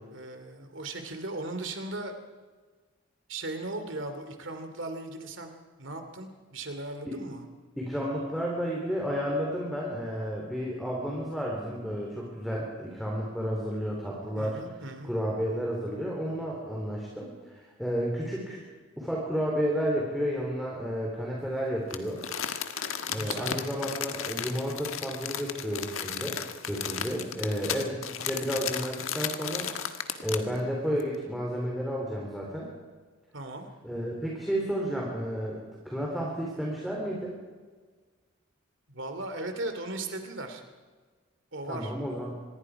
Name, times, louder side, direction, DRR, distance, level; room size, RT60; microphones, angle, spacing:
voice 1, 0.1-2.1 3.3-7.4 14.4-15.1 23.1-23.6 33.3-33.7 38.9-40.6 41.5-41.9, right 2 dB, 60° right, 7 dB, 2.7 m, -37 dB
voice 2, 7.8-14.6 15.0-18.6 19.0-22.2 23.1-26.4 26.7-29.7 30.2-32.7 33.8-37.3 41.7-42.3, equal, ahead, -3 dB, 3.5 m, -32 dB
Crumpling crinkling, 21.9-30.6 31.0-31.1, left 8 dB, 75° left, 1.5 m, -34 dB
25.5 x 21.5 x 4.9 m, 1.4 s
head